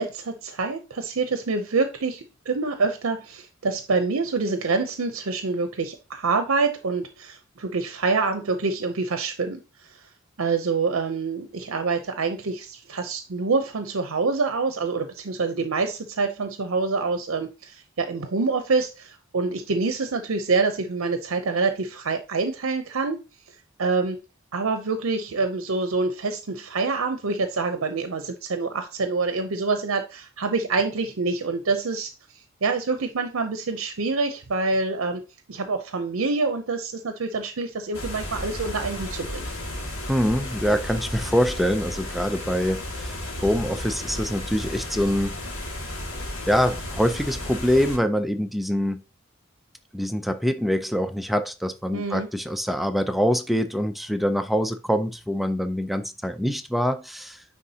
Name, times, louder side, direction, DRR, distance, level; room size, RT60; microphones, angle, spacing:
voice 1, 0.0-9.6 9.9-10.1 10.4-23.2 23.8-24.2 24.5-32.1 32.6-35.2 35.5-39.5 51.9-52.3, right 4 dB, 70° right, 0.7 m, -26 dB
sound 1, 37.9-48.0, left 1 dB, 90° left, 2.3 m, -33 dB
voice 2, 40.1-45.4 46.5-49.0 49.9-57.4, equal, ahead, 0.4 m, -24 dB
9.5 x 3.6 x 2.8 m
head